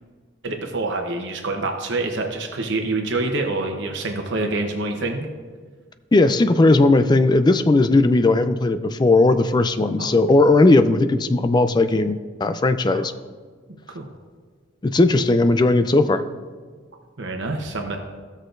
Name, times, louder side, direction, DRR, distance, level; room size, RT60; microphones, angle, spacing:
voice 1, 0.4-5.3 10.0-10.1 12.9-13.0 13.9-14.1 17.2-18.0, right 2 dB, 70° right, 3 dB, 0.9 m, -26 dB
voice 2, 6.1-13.1 14.8-16.2, left 2 dB, 25° left, 10 dB, 0.4 m, -17 dB
16.0 x 6.4 x 2.6 m, 1.5 s
head